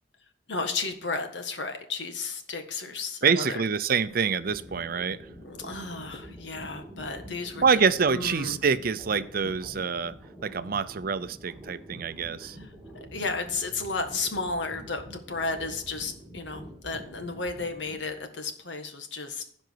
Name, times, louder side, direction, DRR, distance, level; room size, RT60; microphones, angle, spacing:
voice 1, 0.5-3.6 5.4-7.8 8.1-8.6 12.4-19.4, left 3 dB, 80° left, 6 dB, 1.6 m, -33 dB
voice 2, 3.2-5.2 7.6-10.1 10.4-12.6, right 6 dB, 55° right, 14 dB, 0.6 m, -26 dB
sound 1, 4.0-18.3, equal, 5° right, 2.5 m, -46 dB
15.5 x 5.2 x 4.6 m, 0.64 s
head